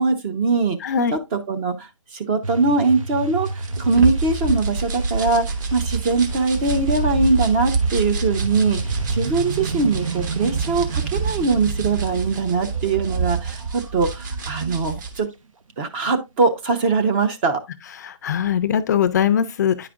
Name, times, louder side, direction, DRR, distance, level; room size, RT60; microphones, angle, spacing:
voice 1, 0.0-0.8 1.1-15.3 15.8-17.6, right 3 dB, 20° right, 0.5 m, -22 dB
voice 2, 0.8-1.2 18.0-19.9, left 8 dB, 35° left, 0.4 m, -21 dB
sound 1, 2.4-14.9, right 3 dB, 80° right, 0.9 m, -30 dB
sound 2, 3.5-15.2, right 5 dB, 35° right, 1.2 m, -28 dB
9.6 x 4.9 x 2.4 m
hypercardioid pair, 150°, 17 cm